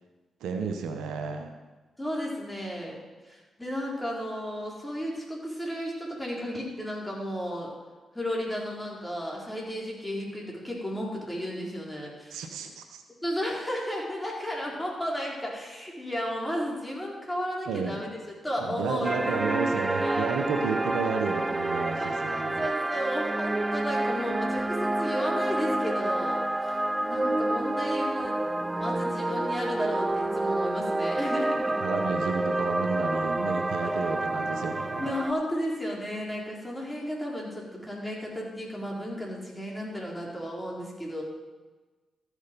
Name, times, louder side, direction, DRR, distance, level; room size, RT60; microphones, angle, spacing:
voice 1, 0.4-1.5 12.3-13.0 17.7-18.0 18.6-22.7 31.8-35.1, right 5 dB, 85° right, 6 dB, 0.9 m, -32 dB
voice 2, 2.0-3.0 3.3-7.7 8.1-12.5 13.2-18.1 18.4-19.4 19.8-20.3 22.0-26.7 27.0-31.8 34.0-34.1 35.0-41.2, equal, 10° left, -3 dB, 4.0 m, -33 dB
sound 1, 19.0-35.3, right 2 dB, 20° right, 0.5 m, -28 dB
13.5 x 6.5 x 5.2 m, 1.3 s
supercardioid pair, 50°, 0 cm